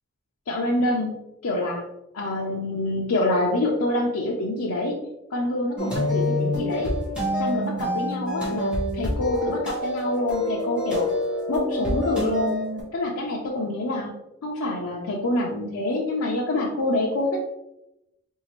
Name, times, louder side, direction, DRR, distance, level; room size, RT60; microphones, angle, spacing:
voice 1, 0.5-1.1 1.4-1.8 2.1-5.0 5.3-6.9 7.3-11.1 11.5-12.5 12.9-14.1 14.4-17.4, left 1 dB, 90° left, -3 dB, 0.6 m, -26 dB
sound 1, 5.8-12.8, left 1 dB, 5° right, 1.3 m, -27 dB
4.0 x 2.7 x 2.9 m, 0.88 s
head